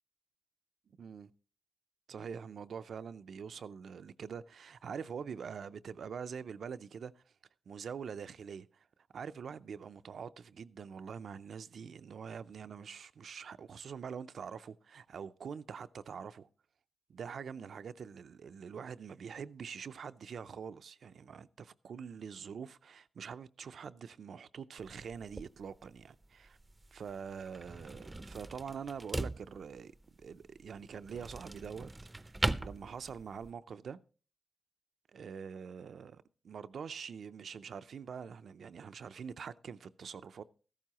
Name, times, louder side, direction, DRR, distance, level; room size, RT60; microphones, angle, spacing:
voice 1, 1.0-1.3 2.1-7.2 7.7-8.8 9.1-16.5 17.1-26.6 26.9-29.9 30.2-34.0 35.1-40.4, right 6 dB, 75° right, 0.4 m, -45 dB
sound 1, 24.8-33.5, right 2 dB, 20° right, 0.5 m, -41 dB
14.0 x 12.0 x 2.9 m
cardioid pair, 65°, 0 cm